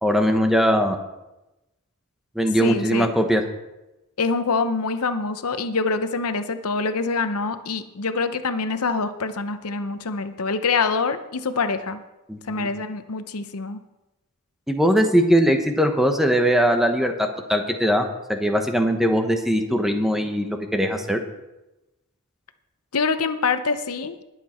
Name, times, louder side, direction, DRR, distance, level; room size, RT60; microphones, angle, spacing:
voice 1, 0.0-1.0 2.3-3.4 12.3-12.7 14.7-21.2, equal, ahead, 5 dB, 1.1 m, -20 dB
voice 2, 2.6-3.1 4.2-12.0 12.5-13.8 22.9-24.2, left 4 dB, 80° left, 10 dB, 0.8 m, -25 dB
20.0 x 7.5 x 4.4 m, 0.97 s
head